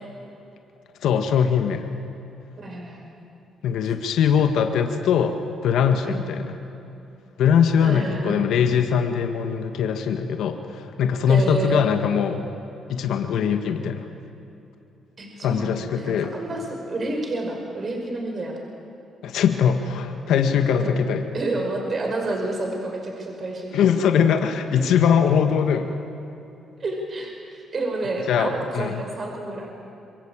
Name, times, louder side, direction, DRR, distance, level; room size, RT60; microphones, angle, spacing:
voice 1, 1.0-1.9 3.6-5.4 5.6-6.6 7.4-12.4 12.9-14.1 15.4-16.4 19.2-21.3 23.7-26.0 28.3-29.0, left 7 dB, 80° left, 5 dB, 1.8 m, -21 dB
voice 2, 2.6-3.2 6.0-6.3 7.8-8.5 11.3-11.8 15.2-18.6 20.8-21.0 21.3-24.0 26.8-29.7, right 2 dB, 40° right, 2 dB, 5.6 m, -29 dB
26.5 x 23.0 x 9.0 m, 2.9 s
cardioid pair, 90°, 0 cm